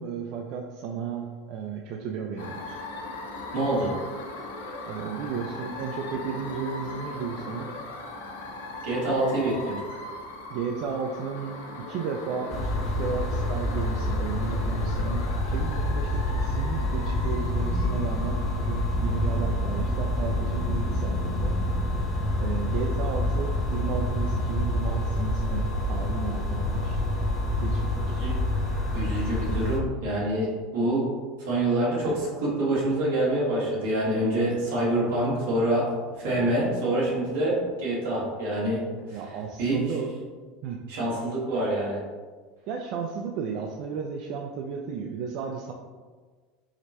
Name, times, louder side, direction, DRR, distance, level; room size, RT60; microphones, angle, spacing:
voice 1, 0.0-2.8 4.9-7.7 10.5-21.6 22.4-27.1 27.6-28.3 39.1-40.1 40.6-40.8 42.7-45.7, right 6 dB, 55° right, 1 dB, 0.3 m, -34 dB
sound 1, 2.4-20.4, left 2 dB, 85° left, 0.5 m, -39 dB
voice 2, 3.5-3.9 8.8-10.0 28.2-28.4 28.9-31.0 31.4-35.9 36.2-38.8 39.6-39.8 40.9-42.0, right 1 dB, 80° right, -5 dB, 1.4 m, -26 dB
sound 2, 12.5-29.8, left 1 dB, 15° left, 0.8 m, -27 dB
4.8 x 2.1 x 2.8 m, 1.4 s
supercardioid pair, 125°, 0 cm